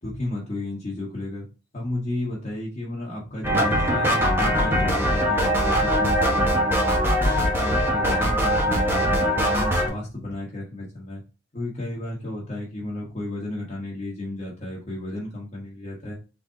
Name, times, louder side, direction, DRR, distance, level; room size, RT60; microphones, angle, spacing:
voice 1, 0.0-1.5 1.7-7.1 7.6-11.2 11.5-16.1, left 1 dB, 35° left, -5 dB, 1.1 m, -33 dB
sound 1, 3.4-9.9, equal, 10° right, 0.9 m, -21 dB
3.8 x 3.4 x 3.7 m, 0.33 s
head